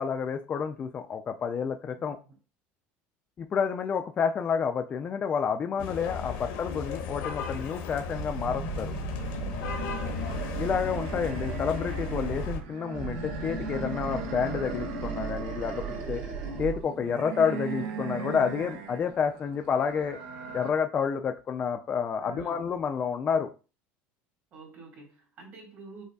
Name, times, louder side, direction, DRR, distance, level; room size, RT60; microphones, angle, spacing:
voice 1, 0.0-2.2 3.4-8.9 10.6-16.2 16.6-20.2 20.5-23.5, left 6 dB, 25° left, 6 dB, 0.3 m, -29 dB
voice 2, 1.9-2.4 5.7-5.8 9.7-10.3 22.2-22.6 24.5-26.0, right 3 dB, 40° right, 1 dB, 1.5 m, -48 dB
sound 1, 5.8-12.6, left 6 dB, 80° left, 0.9 m, -36 dB
Animal, 8.1-12.6 12.9-16.8, right 4 dB, 65° right, 1.5 m, -36 dB
sound 2, 9.5-20.7, right 6 dB, 85° right, 0.6 m, -40 dB
5.1 x 2.4 x 2.2 m, 0.34 s
supercardioid pair, 130°, 5 cm